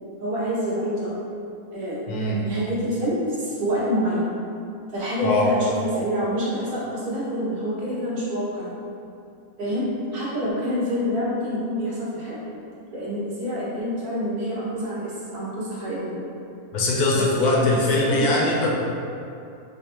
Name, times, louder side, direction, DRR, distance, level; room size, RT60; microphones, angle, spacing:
voice 1, 0.2-1.1 1.7-2.1 2.4-4.3 4.9-8.7 9.6-9.9 10.1-12.5 12.9-16.2 17.1-17.8 18.1-18.3, equal, 85° right, -9 dB, 1.6 m, -27 dB
voice 2, 2.1-2.4 5.2-5.5 16.7-18.7, left 2 dB, 75° left, -3 dB, 1.1 m, -21 dB
5.1 x 2.1 x 2.9 m, 2.6 s
omnidirectional pair, 1.7 m